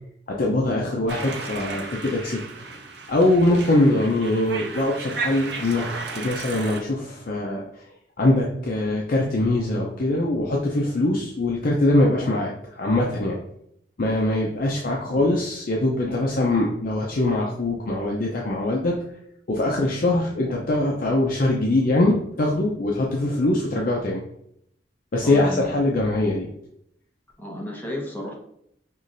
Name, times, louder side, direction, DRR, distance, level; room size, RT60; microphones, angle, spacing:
voice 1, 0.3-2.4 3.1-5.8 6.1-7.6 8.2-13.4 14.0-18.9 19.5-24.2 25.1-26.5, left 1 dB, 55° left, -2 dB, 0.6 m, -22 dB
sound 1, 1.1-6.8, right 4 dB, 70° right, 0.7 m, -34 dB
voice 2, 25.2-25.7 27.4-28.3, left 1 dB, 10° left, -3 dB, 1.1 m, -33 dB
5.6 x 3.1 x 2.5 m, 0.75 s
head